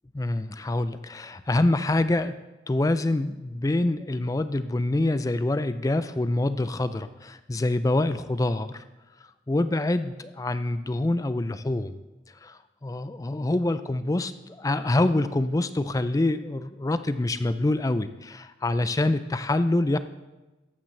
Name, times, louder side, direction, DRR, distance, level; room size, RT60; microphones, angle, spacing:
voice 1, 0.1-2.3 2.7-8.8 9.5-12.0 12.4-20.0, left 2 dB, 20° left, 12 dB, 0.4 m, -26 dB
13.5 x 8.7 x 3.2 m, 1.1 s
head